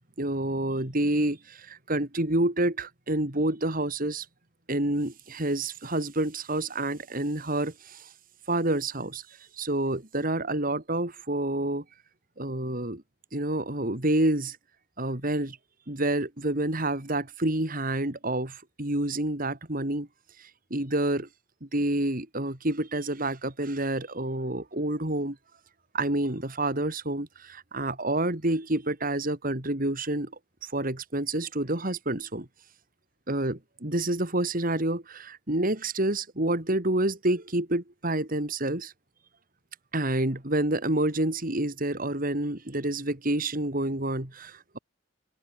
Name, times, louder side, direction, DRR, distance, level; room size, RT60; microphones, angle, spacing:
voice 1, 0.2-4.2 4.7-8.1 8.5-9.2 9.6-11.8 12.4-13.0 13.3-14.6 15.0-15.6 15.9-20.1 20.4-21.3 21.6-25.4 25.9-30.3 30.6-32.5 33.3-38.9 39.9-44.8, right 1 dB, 45° right, 3.3 m, -28 dB
open air
head